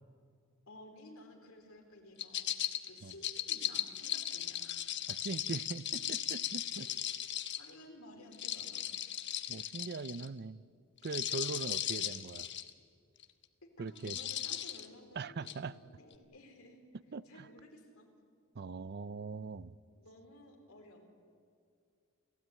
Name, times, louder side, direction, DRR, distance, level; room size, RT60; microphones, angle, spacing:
voice 1, 0.7-5.0 7.6-8.8 11.7-12.0 13.6-16.8 17.3-18.1 20.0-21.0, left 1 dB, 85° left, 2 dB, 4.2 m, -55 dB
sound 1, 2.2-7.7 8.3-10.3 11.0-12.7 13.2-13.4 14.0-14.9 15.5-15.6, left 11 dB, 55° left, 1.1 m, -37 dB
voice 2, 5.1-6.9 9.5-10.6 11.0-12.5 13.8-14.2 15.2-15.8 17.1-17.5 18.5-19.7, right 4 dB, 50° right, 17 dB, 0.5 m, -41 dB
29.5 x 15.5 x 9.3 m, 2.3 s
head